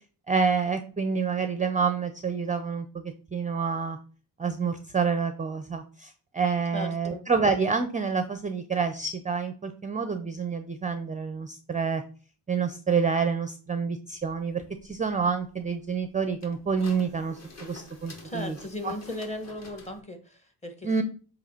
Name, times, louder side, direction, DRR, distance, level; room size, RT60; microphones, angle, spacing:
voice 1, 0.3-4.0 4.4-12.0 12.5-18.6 18.8-18.9 20.8-21.0, right 5 dB, 20° right, 8 dB, 0.5 m, -28 dB
voice 2, 6.7-7.2 18.2-21.0, left 1 dB, 15° left, 6 dB, 1.2 m, -37 dB
sound 1, 14.2-20.0, left 3 dB, 35° left, 1.7 m, -49 dB
7.5 x 3.1 x 5.6 m, 0.39 s
wide cardioid pair, 140°, 42 cm